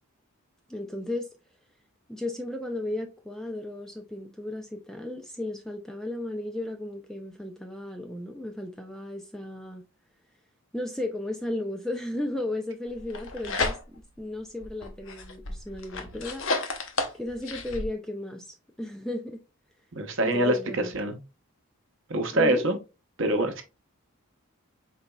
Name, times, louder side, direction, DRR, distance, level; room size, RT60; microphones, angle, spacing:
voice 1, 0.7-1.3 2.1-9.8 10.7-16.4 17.1-19.4 20.2-20.9 22.3-22.7, left 1 dB, ahead, 0.3 m, -35 dB
sound 1, 13.0-14.2 14.6-17.9, left 3 dB, 60° left, 0.7 m, -32 dB
voice 2, 19.9-21.2 22.1-22.8 23.2-23.6, right 1 dB, 55° right, 0.8 m, -25 dB
4.0 x 3.9 x 2.2 m
head